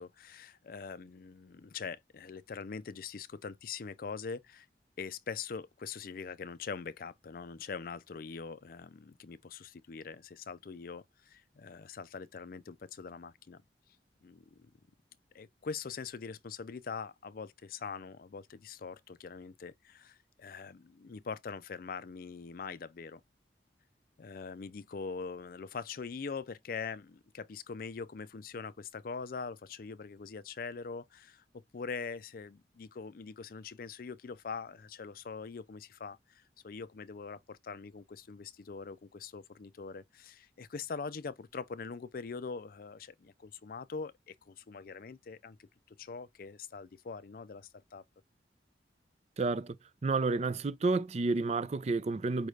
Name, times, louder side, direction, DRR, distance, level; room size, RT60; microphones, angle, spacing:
voice 1, 0.0-4.7 5.0-13.6 14.2-14.7 15.3-23.2 24.2-48.0, left 5 dB, 55° left, 0.4 m, -43 dB
voice 2, 49.4-49.8 50.0-52.5, right 3 dB, 40° right, 0.4 m, -30 dB
5.3 x 2.4 x 3.2 m
head